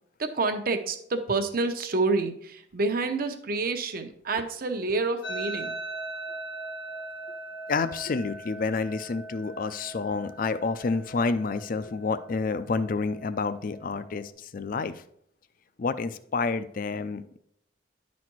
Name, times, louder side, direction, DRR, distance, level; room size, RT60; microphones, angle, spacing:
voice 1, 0.2-5.7, right 3 dB, 55° right, 6 dB, 0.8 m, -28 dB
sound 1, 5.2-14.3, right 2 dB, 75° left, 1.6 m, -40 dB
voice 2, 7.7-15.0 15.8-17.4, left 4 dB, 50° left, 12 dB, 0.5 m, -29 dB
10.5 x 4.2 x 4.5 m, 0.69 s
head